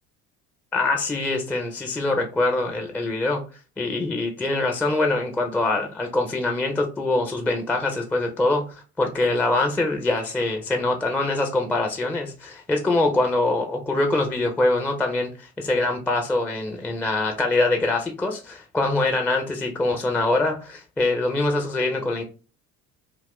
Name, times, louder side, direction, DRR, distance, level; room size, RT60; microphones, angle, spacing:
voice 1, 0.7-3.4 3.8-22.2, left 2 dB, 5° left, 3 dB, 0.3 m, -24 dB
2.6 x 2.6 x 3.4 m, 0.35 s
figure-of-eight pair, 60°, 48 cm